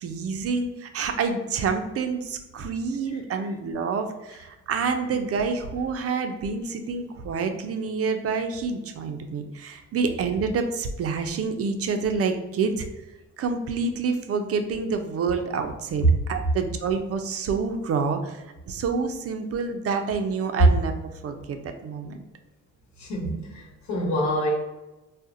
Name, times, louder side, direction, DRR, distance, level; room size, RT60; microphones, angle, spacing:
voice 1, 0.0-12.9 13.4-20.9 21.2-22.2, right 5 dB, 50° right, 6 dB, 0.5 m, -28 dB
voice 2, 23.0-24.5, equal, 70° left, -2 dB, 1.1 m, -27 dB
4.1 x 2.1 x 2.5 m, 1.0 s
cardioid pair, 90°, 30 cm